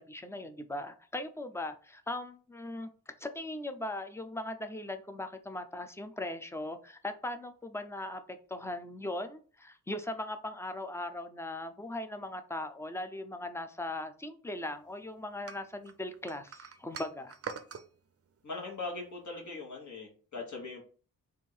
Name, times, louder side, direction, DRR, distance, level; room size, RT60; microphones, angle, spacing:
voice 1, 0.0-17.4, left 1 dB, 5° left, 9 dB, 0.5 m, -39 dB
sound 1, 15.5-17.9, right 6 dB, 40° right, 0.6 m, -43 dB
voice 2, 18.4-20.8, left 3 dB, 50° left, -1 dB, 1.4 m, -40 dB
3.6 x 2.6 x 4.4 m, 0.40 s
cardioid pair, 75°, 37 cm